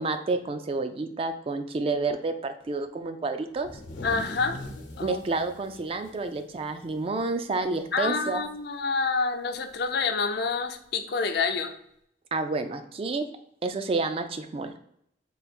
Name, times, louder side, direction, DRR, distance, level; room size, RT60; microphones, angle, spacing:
voice 1, 0.0-3.7 5.0-8.4 12.3-13.3 13.6-14.8, right 3 dB, 30° right, 8 dB, 0.3 m, -29 dB
sound 1, 3.5-7.3 7.6-7.7 8.1-8.6 9.7-9.8 10.8-10.9, left 1 dB, 85° left, 0.9 m, -42 dB
voice 2, 4.0-4.6 5.0-5.2 7.9-11.8, left 4 dB, 60° left, 8 dB, 0.4 m, -28 dB
3.8 x 2.3 x 4.2 m, 0.72 s
head